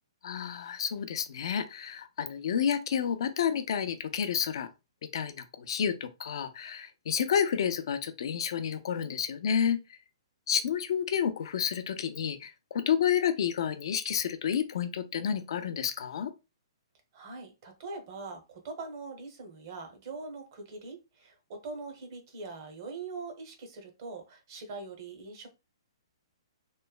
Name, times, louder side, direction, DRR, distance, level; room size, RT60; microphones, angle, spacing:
voice 1, 0.2-4.7 5.1-9.8 10.5-16.3, left 8 dB, 60° left, 0.4 m, -30 dB
voice 2, 17.1-25.5, right 3 dB, 40° right, 0.8 m, -42 dB
3.0 x 2.1 x 2.3 m
hypercardioid pair, 160°, 3 cm